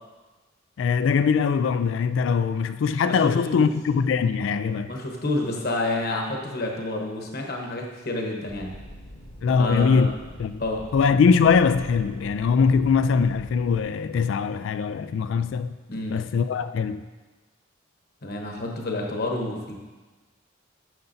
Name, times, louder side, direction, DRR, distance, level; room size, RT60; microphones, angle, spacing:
voice 1, 0.8-4.9 9.4-10.1 10.4-10.6 10.9-15.8 16.1-17.0, left 5 dB, 70° left, 0.3 m, -22 dB
voice 2, 3.1-3.7 4.9-8.7 9.6-10.1 10.6-10.8 15.9-16.2 18.2-19.7, left 2 dB, 55° left, 1.1 m, -29 dB
sound 1, 8.5-13.8, equal, 35° left, 0.9 m, -44 dB
9.4 x 6.8 x 2.7 m
head